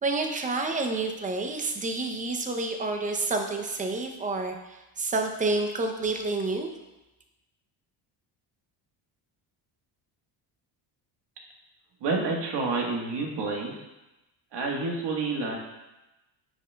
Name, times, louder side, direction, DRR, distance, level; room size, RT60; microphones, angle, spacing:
voice 1, 0.0-4.5 5.0-6.7, right 3 dB, 20° right, 4 dB, 0.6 m, -29 dB
voice 2, 12.0-13.7 14.5-15.5, right 3 dB, 65° right, 0 dB, 1.4 m, -29 dB
9.4 x 5.2 x 2.2 m, 1.0 s
cardioid pair, 145°, 45 cm